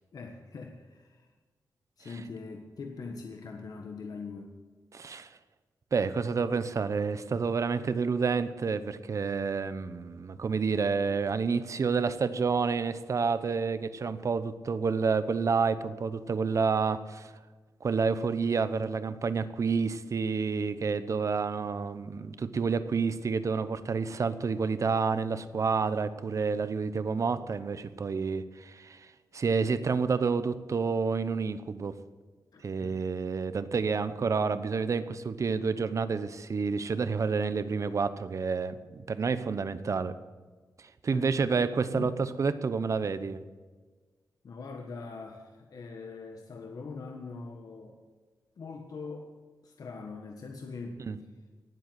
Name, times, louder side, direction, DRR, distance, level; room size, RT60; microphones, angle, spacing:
voice 1, 0.1-1.3 2.0-4.6 32.5-33.0 41.0-41.3 41.9-42.1 44.4-48.0 48.6-49.3 49.6-51.1, left 4 dB, 65° left, 3 dB, 1.4 m, -42 dB
voice 2, 4.9-5.4 5.9-17.3 17.8-32.0 32.6-40.1 40.8-43.4 51.0-51.2, right 5 dB, 50° right, 13 dB, 0.9 m, -29 dB
18.5 x 7.8 x 9.4 m, 1.4 s
wide cardioid pair, 150°, 7 cm